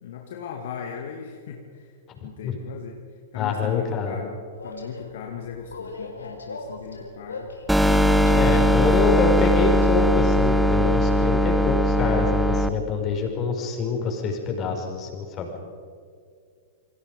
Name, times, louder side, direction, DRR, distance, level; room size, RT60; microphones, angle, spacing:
voice 1, 0.0-1.9 2.2-3.0 3.3-4.4 4.6-7.5 8.2-9.0, left 7 dB, 60° left, 2 dB, 2.3 m, -37 dB
voice 2, 3.3-4.2 8.3-15.5, left 4 dB, 30° left, 2 dB, 6.0 m, -25 dB
Train, 4.5-13.1, left 3 dB, 80° left, 4.5 m, -41 dB
sound 1, 7.7-12.7, equal, ahead, 1.2 m, -19 dB
29.0 x 24.0 x 5.3 m, 2.2 s
figure-of-eight pair, 100°, 0 cm